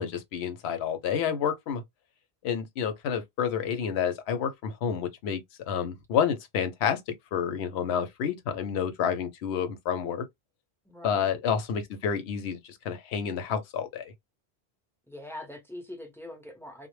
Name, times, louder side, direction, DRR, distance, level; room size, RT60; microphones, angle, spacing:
voice 1, 0.0-1.8 2.4-7.0 7.3-10.3 11.0-14.1, left 7 dB, 85° left, 0.9 m, -29 dB
voice 2, 10.9-11.3 15.1-16.9, left 1 dB, 5° left, 0.6 m, -43 dB
2.1 x 2.0 x 3.0 m
omnidirectional pair, 1.1 m